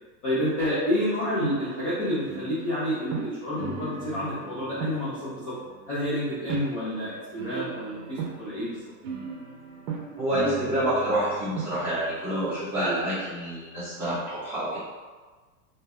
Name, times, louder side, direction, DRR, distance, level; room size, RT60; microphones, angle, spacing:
voice 1, 0.2-5.5 5.9-8.8, equal, 25° left, -12 dB, 0.4 m, -29 dB
sound 1, 1.1-1.9 2.2-6.7 7.3-13.0, right 6 dB, 60° right, 0.6 m, -38 dB
voice 2, 10.2-14.8, right 1 dB, 5° right, -14 dB, 0.7 m, -27 dB
2.7 x 2.2 x 3.3 m, 1.4 s
supercardioid pair, 170°, 46 cm